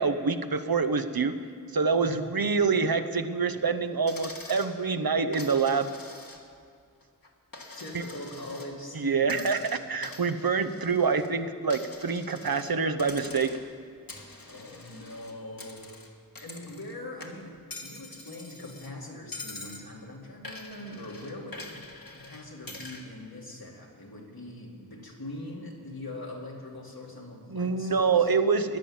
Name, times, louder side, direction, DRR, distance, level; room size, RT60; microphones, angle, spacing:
voice 1, 0.0-1.4 1.7-5.9 8.9-13.6 27.5-28.8, right 5 dB, 80° right, 9 dB, 0.8 m, -26 dB
Coin (dropping), 4.1-4.7 5.3-6.6 7.0-8.7 9.2-11.3 11.7-12.7 13.0-13.7 14.1-16.9 17.2-18.9 19.3-19.9 20.4-23.1, left 2 dB, 70° left, 1.6 m, -45 dB
voice 2, 7.7-9.6 14.5-16.0 16.4-21.8 22.1-28.3, left 1 dB, 90° left, -2 dB, 2.4 m, -42 dB
15.0 x 10.5 x 7.1 m, 2.2 s
wide cardioid pair, 45°, 36 cm